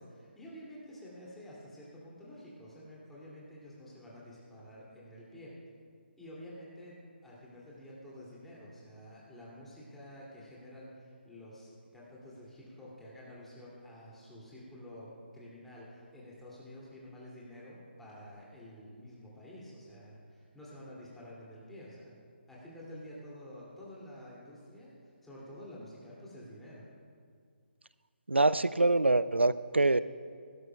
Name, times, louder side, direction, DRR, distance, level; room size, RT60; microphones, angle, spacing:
voice 1, 0.0-5.6 6.2-22.1 22.5-24.9 25.2-26.9, equal, 5° left, -7 dB, 2.5 m, -49 dB
voice 2, 28.3-30.0, right 2 dB, 90° right, 16 dB, 0.3 m, -25 dB
17.5 x 12.5 x 2.3 m, 2.1 s
figure-of-eight pair, 145°, 6 cm